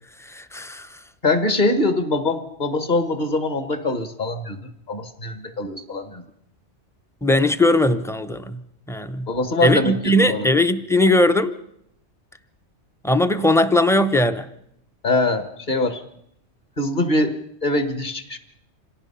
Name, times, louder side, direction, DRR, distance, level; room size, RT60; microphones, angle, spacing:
voice 1, 0.3-0.9 7.2-8.6 8.9-9.3 9.6-11.6 13.0-14.5, left 1 dB, 5° left, 10 dB, 0.5 m, -19 dB
voice 2, 1.2-6.2 9.3-10.5 15.0-16.0 16.8-17.4 17.6-18.4, left 2 dB, 40° left, 9 dB, 1.5 m, -23 dB
26.0 x 17.5 x 5.6 m, 0.74 s
omnidirectional pair, 1.3 m